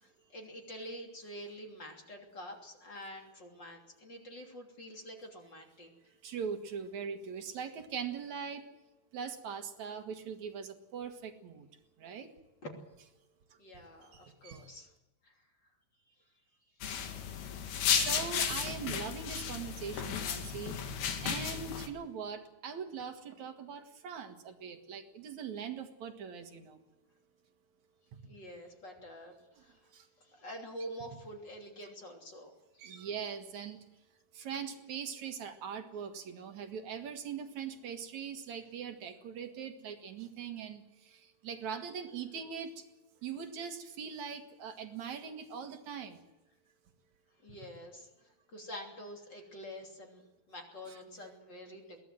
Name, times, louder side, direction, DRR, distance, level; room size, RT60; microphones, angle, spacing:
voice 1, 0.0-5.9 12.6-12.7 13.6-14.9 15.2-15.3 28.3-29.9 30.2-32.9 47.4-48.1 48.5-50.2 50.5-52.0, equal, 30° left, 1 dB, 3.3 m, -47 dB
voice 2, 6.2-8.6 9.1-11.7 12.0-12.3 14.1-14.7 17.9-26.8 29.9-30.1 32.8-33.8 34.3-42.8 43.2-46.2 50.9-51.3, right 7 dB, 55° right, 6 dB, 2.7 m, -41 dB
sound 1, 16.8-21.9, left 8 dB, 85° left, 3.7 m, -34 dB
22.5 x 17.0 x 7.7 m, 1.0 s
omnidirectional pair, 4.3 m